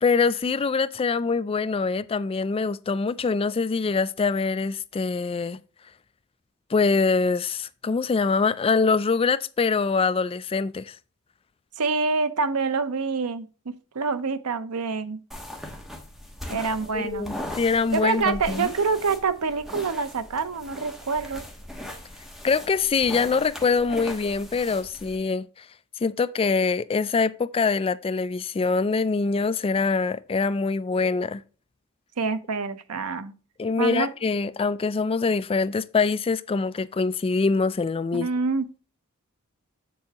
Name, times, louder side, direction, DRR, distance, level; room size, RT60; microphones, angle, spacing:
voice 1, 0.0-5.6 6.7-11.0 16.9-18.7 22.4-25.7 26.0-31.4 33.6-38.3, left 4 dB, 25° left, 0.3 m, -24 dB
voice 2, 11.8-15.2 16.5-17.3 17.9-21.4 32.2-33.3 33.8-34.1 38.1-38.7, right 4 dB, 90° right, 0.7 m, -26 dB
sound 1, 15.3-25.2, left 1 dB, ahead, 1.2 m, -39 dB
7.6 x 6.9 x 2.9 m
head